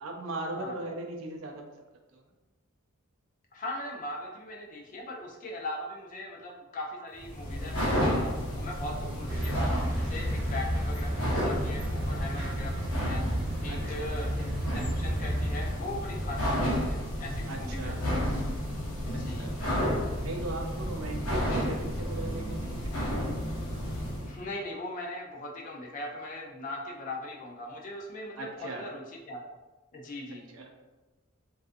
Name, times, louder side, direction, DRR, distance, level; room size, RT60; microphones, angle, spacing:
voice 1, 0.0-1.6 2.1-2.2 13.7-14.1 17.5-18.0 19.3-19.5 20.2-23.2 28.4-28.8 30.5-30.7, right 2 dB, 80° right, 3 dB, 0.4 m, -38 dB
voice 2, 3.5-8.3 8.6-9.6 10.0-13.2 13.6-18.1 19.2-19.5 24.2-29.4 29.9-30.5, left 1 dB, 40° left, 0 dB, 0.4 m, -40 dB
sound 1, 7.2-24.4, equal, 90° left, 0.8 m, -32 dB
sound 2, 9.3-15.7, right 1 dB, 15° right, 1.0 m, -32 dB
2.4 x 2.3 x 2.5 m, 1.1 s
head